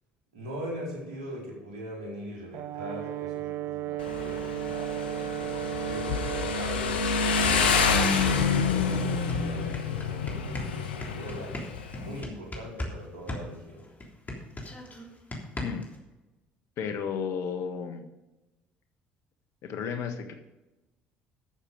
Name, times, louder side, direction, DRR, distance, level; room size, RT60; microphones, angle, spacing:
voice 1, 0.3-7.0 7.4-11.6 12.0-13.8, equal, 80° right, -3 dB, 4.2 m, -41 dB
Brass instrument, 2.5-6.7, right 14 dB, 60° right, 0.4 m, -34 dB
Motorcycle, 4.0-12.2, left 5 dB, 90° left, 1.0 m, -28 dB
sound 1, 9.3-13.0 13.3-16.0, left 1 dB, 30° left, 3.4 m, -37 dB
voice 2, 16.8-18.1 19.6-20.4, left 6 dB, 65° left, 8 dB, 1.4 m, -33 dB
13.5 x 6.9 x 5.1 m, 1.1 s
hypercardioid pair, 55°, 5 cm